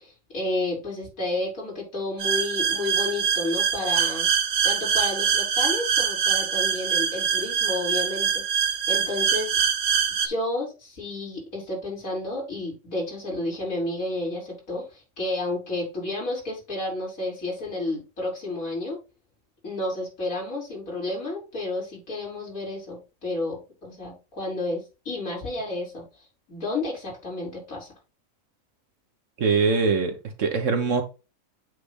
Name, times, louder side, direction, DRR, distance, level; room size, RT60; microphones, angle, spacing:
voice 1, 0.0-4.3 4.6-9.5 10.2-19.0 19.6-26.0 26.5-27.9, left 2 dB, 70° left, 4.7 m, -31 dB
sound 1, 2.2-10.3, right 7 dB, 85° right, 1.3 m, -24 dB
voice 2, 29.4-31.0, right 4 dB, 60° right, 1.4 m, -23 dB
7.9 x 3.3 x 5.0 m
omnidirectional pair, 1.5 m